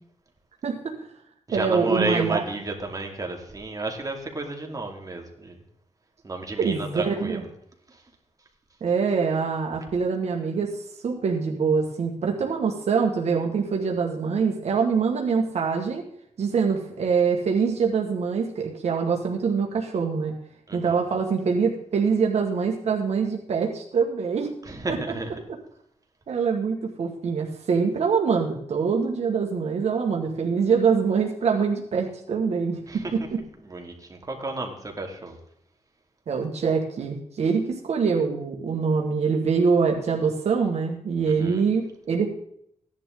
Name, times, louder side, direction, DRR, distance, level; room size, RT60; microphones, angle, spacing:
voice 1, 0.6-0.9 1.5-2.4 6.6-7.4 8.8-10.8 11.0-16.0 16.4-20.3 20.7-24.5 26.3-33.4 36.3-42.3, right 5 dB, 65° right, 1 dB, 1.8 m, -24 dB
voice 2, 1.5-5.6 6.2-7.5 7.9-8.0 20.7-21.0 24.7-25.3 32.9-33.1 33.6-35.4 41.2-41.6, right 2 dB, 30° right, 2 dB, 2.6 m, -32 dB
16.5 x 10.5 x 3.9 m, 0.69 s
cardioid pair, 100°, 12 cm